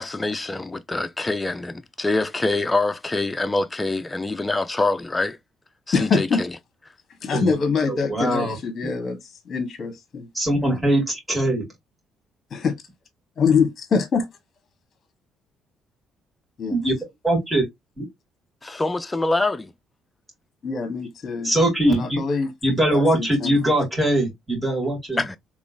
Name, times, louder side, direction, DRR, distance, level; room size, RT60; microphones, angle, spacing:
voice 1, 0.0-5.4 5.9-6.5 18.6-19.7 25.2-25.4, left 2 dB, 20° left, 0.5 m, -25 dB
voice 2, 5.9-6.4 7.2-10.3 12.5-12.7 13.4-14.3 16.6-16.8 20.6-21.5 21.9-22.5 22.9-23.5, left 5 dB, 50° left, 1.1 m, -24 dB
voice 3, 7.9-8.6 8.8-8.9 10.3-11.6 16.7-16.9 17.2-17.6 18.0-18.1 21.4-22.2 22.6-25.2, right 1 dB, 5° right, 2.2 m, -21 dB
3.7 x 3.0 x 2.5 m
supercardioid pair, 80°, 0 cm